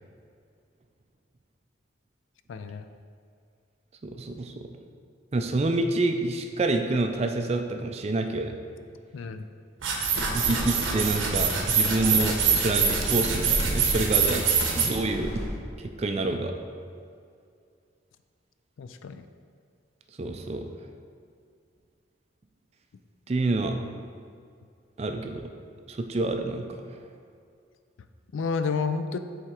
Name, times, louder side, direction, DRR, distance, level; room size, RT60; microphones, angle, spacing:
voice 1, 2.5-2.8 9.1-9.5 18.8-19.3 28.3-29.2, left 5 dB, 75° left, 10 dB, 0.4 m, -30 dB
voice 2, 4.0-4.7 5.3-8.5 10.3-14.5 14.8-15.3 15.8-16.5 20.2-20.7 23.3-23.8 25.0-25.4 25.9-26.7, right 2 dB, 30° right, 5 dB, 0.4 m, -27 dB
sound 1, 9.8-14.9, right 6 dB, 75° right, 0.8 m, -25 dB
sound 2, 10.1-15.5, equal, 55° left, 1.6 m, -34 dB
7.8 x 3.6 x 4.4 m, 2.3 s
head